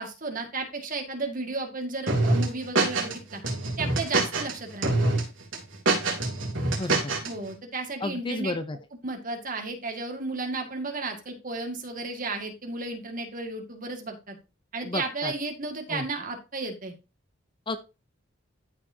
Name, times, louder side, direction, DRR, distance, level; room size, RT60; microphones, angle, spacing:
voice 1, 0.0-3.4 3.8-5.0 7.2-8.6 9.0-14.4 14.7-16.9, right 3 dB, 40° right, 3 dB, 2.0 m, -33 dB
sound 1, 2.1-3.1 3.4-4.5 4.8-5.2 5.5-7.3, right 2 dB, 65° right, 3.6 m, -24 dB
voice 2, 6.8-7.2 8.0-8.8 14.8-15.3 15.9-16.0 17.7-17.8, left 2 dB, 25° left, 10 dB, 0.6 m, -31 dB
13.5 x 5.0 x 2.8 m, 0.28 s
head